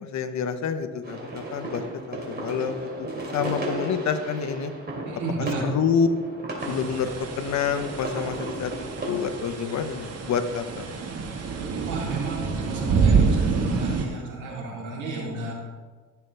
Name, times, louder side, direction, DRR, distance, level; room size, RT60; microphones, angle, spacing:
voice 1, 0.0-3.1 3.3-4.7 5.6-6.1 6.6-8.7 9.1-10.8, left 6 dB, 65° left, 9 dB, 1.0 m, -27 dB
sound 1, 1.0-9.1, right 1 dB, 35° right, 3.0 m, -35 dB
voice 2, 5.1-5.6 11.8-15.5, right 3 dB, 80° right, -4 dB, 3.3 m, -32 dB
sound 2, 6.6-14.1, right 5 dB, 55° right, 1.7 m, -27 dB
15.0 x 7.1 x 3.4 m, 1.5 s
cardioid pair, 90°, 30 cm